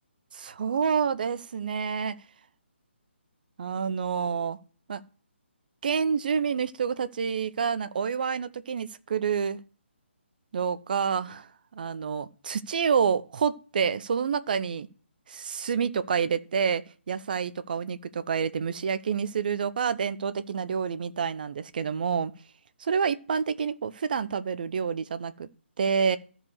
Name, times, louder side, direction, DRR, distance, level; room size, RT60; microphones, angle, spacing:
voice 1, 0.3-2.2 3.6-4.6 4.9-5.0 5.8-9.6 10.5-11.5 11.7-14.9 15.3-22.3 22.8-25.5 25.8-26.2, right 6 dB, 45° right, 0.7 m, -28 dB
13.5 x 5.0 x 6.4 m
figure-of-eight pair, 140°, 6 cm